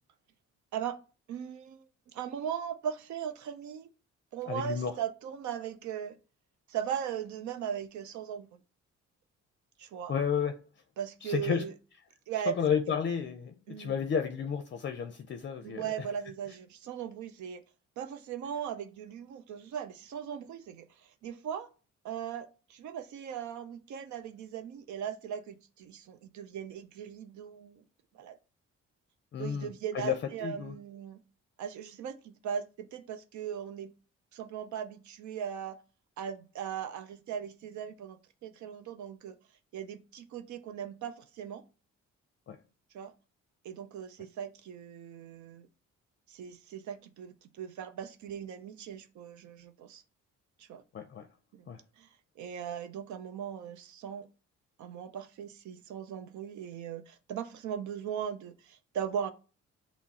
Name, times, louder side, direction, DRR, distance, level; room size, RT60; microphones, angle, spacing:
voice 1, 1.3-1.8 2.1-3.9 4.3-6.2 6.7-8.6 9.8-10.1 11.0-11.7 12.3-12.5 13.7-13.9 15.6-17.6 18.0-21.7 22.0-27.8 28.1-28.3 29.4-31.2 31.6-33.9 34.3-35.8 36.2-39.3 39.7-41.6 42.9-43.1 43.6-45.7 46.3-50.0 50.6-50.8 51.5-51.7 52.0-52.1 52.4-54.3 54.8-59.3, right 8 dB, 70° right, 0.6 m, -38 dB
voice 2, 4.5-4.9 10.1-10.5 11.2-11.7 12.5-15.8 29.3-30.2 30.4-30.7 42.5-42.6 50.9-51.3 51.7-51.8, left 7 dB, 40° left, 0.5 m, -32 dB
5.9 x 2.0 x 4.1 m
cardioid pair, 90°, 30 cm